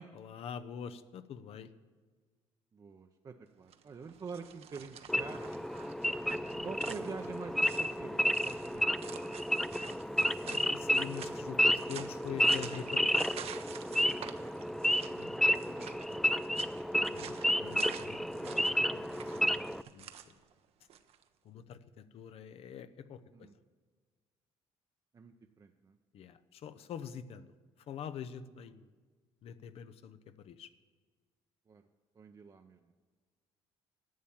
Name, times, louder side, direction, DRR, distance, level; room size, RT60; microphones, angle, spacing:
voice 1, 0.1-1.7 6.4-6.7 9.9-13.3 14.9-15.8 17.1-20.4 21.4-23.5 26.1-27.5 27.9-28.9 29.4-30.7, left 8 dB, 65° left, 13 dB, 0.7 m, -46 dB
voice 2, 2.7-5.6 6.6-8.9 14.1-14.5 15.2-16.6 16.9-17.2 23.3-23.6 25.1-26.0 31.7-31.8 32.1-32.9, right 5 dB, 35° right, 5 dB, 0.6 m, -47 dB
sound 1, 3.6-21.2, right 9 dB, 65° right, 0.7 m, -50 dB
Wild animals / Idling, 5.1-19.8, equal, ahead, 0.3 m, -31 dB
11.0 x 7.5 x 7.3 m, 1.5 s
supercardioid pair, 85°, 11 cm